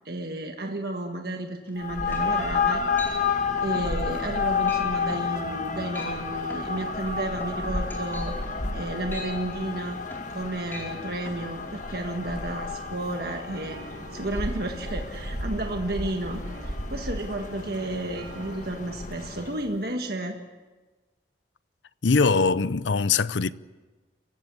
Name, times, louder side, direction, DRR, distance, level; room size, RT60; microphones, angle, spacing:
voice 1, 0.0-2.8 3.1-3.3 3.6-10.0 10.3-13.8 14.1-20.4, right 1 dB, 55° right, 1.6 m, -32 dB
sound 1, 1.7-1.8 2.1-2.5 3.0-3.2 3.6-3.9 4.2-4.4 4.7-4.8 5.1-5.3 5.8-6.2 6.5-10.4 10.7-10.9 11.3-11.4, left 1 dB, 10° left, 4.5 m, -41 dB
sound 2, 1.8-19.7, left 5 dB, 45° left, 1.5 m, -31 dB
sound 3, 13.5-18.8, right 1 dB, 85° right, 3.1 m, -36 dB
voice 2, 22.0-23.5, left 4 dB, 80° left, 0.6 m, -22 dB
28.0 x 16.0 x 8.4 m
head